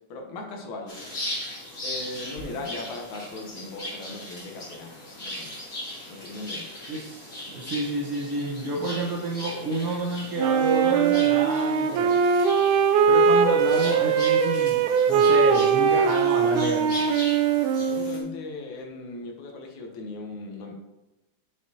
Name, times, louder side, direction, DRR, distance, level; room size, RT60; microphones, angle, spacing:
voice 1, 0.1-1.1 1.8-5.7 6.1-6.7 17.7-20.7, left 2 dB, 75° left, 2 dB, 2.4 m, -38 dB
sound 1, 0.9-18.2, left 1 dB, 30° left, 2.4 m, -39 dB
voice 2, 6.9-12.2 13.1-14.8 15.1-17.0, right 2 dB, 60° right, -3 dB, 1.7 m, -29 dB
Wind instrument woodwind instrument, 10.4-18.4, right 6 dB, 90° right, 2.1 m, -21 dB
9.3 x 6.5 x 2.9 m, 1.0 s
omnidirectional pair, 3.4 m